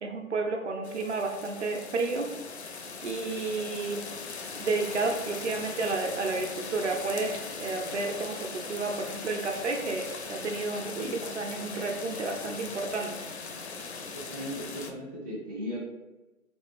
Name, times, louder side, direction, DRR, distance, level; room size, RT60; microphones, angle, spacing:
voice 1, 0.0-2.3 3.0-4.0 4.6-13.3, right 3 dB, 55° right, 2 dB, 0.6 m, -31 dB
sound 1, 0.8-14.9, left 4 dB, 55° left, 0.5 m, -40 dB
voice 2, 14.1-15.8, equal, 15° right, -10 dB, 0.5 m, -37 dB
3.3 x 2.6 x 3.1 m, 1.1 s
figure-of-eight pair, 140°, 41 cm